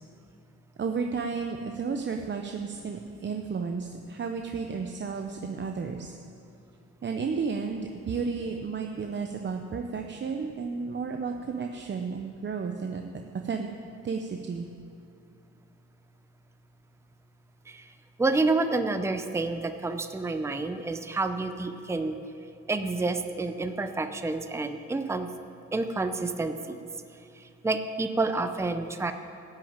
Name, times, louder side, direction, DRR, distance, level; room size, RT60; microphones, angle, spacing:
voice 1, 0.8-6.1 7.0-13.0 13.4-13.7 14.0-14.7, right 5 dB, 40° right, 4 dB, 0.8 m, -32 dB
voice 2, 18.2-22.2 22.7-25.3 25.7-26.8 27.3-29.1, right 3 dB, 10° right, 8 dB, 0.6 m, -29 dB
13.5 x 6.3 x 8.9 m, 2.5 s
cardioid pair, 90°, 29 cm